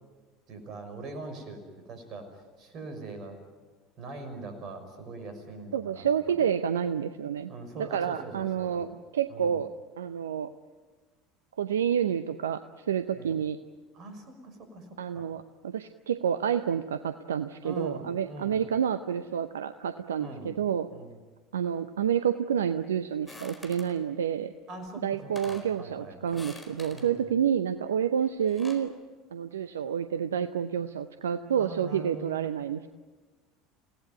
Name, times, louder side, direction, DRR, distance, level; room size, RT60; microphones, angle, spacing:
voice 1, 0.5-1.6 1.9-2.3 2.6-3.4 4.0-6.5 7.5-9.0 9.3-9.5 13.2-13.3 13.9-14.8 15.1-15.2 17.6-18.6 20.2-20.5 20.9-21.1 24.7-26.2 26.9-27.2 31.6-32.7, right 2 dB, 45° right, 7 dB, 5.8 m, -42 dB
voice 2, 5.7-9.7 10.0-10.5 11.6-12.6 12.9-13.6 15.0-20.9 21.5-24.5 25.0-28.9 29.3-32.9, right 8 dB, 75° right, 11 dB, 0.7 m, -29 dB
sound 1, 23.3-24.0 24.9-25.0 25.2-25.7 26.3-27.1 28.3-28.9, left 2 dB, 15° left, 4.4 m, -47 dB
28.5 x 18.0 x 9.1 m, 1.4 s
figure-of-eight pair, 70°, 0 cm